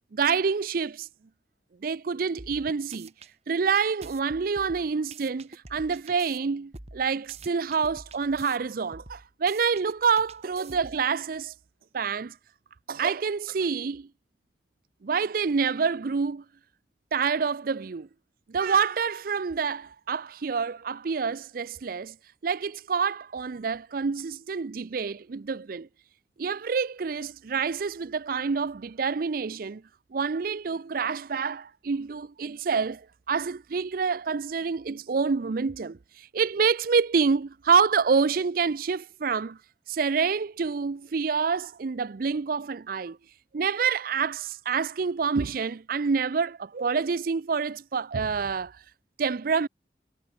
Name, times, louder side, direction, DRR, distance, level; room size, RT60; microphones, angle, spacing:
voice 1, 0.1-1.1 1.8-3.1 3.5-11.5 11.9-12.4 12.9-14.1 15.0-16.4 17.1-18.1 18.5-22.1 22.4-25.9 26.4-29.8 30.1-36.0 36.3-39.6 39.9-43.2 43.5-48.7 49.2-49.7, right 5 dB, 55° right, 0.5 m, -27 dB
sound 1, 2.4-3.3 3.7-6.4 6.7-8.6 8.9-11.1, right 3 dB, 35° right, 1.8 m, -47 dB
head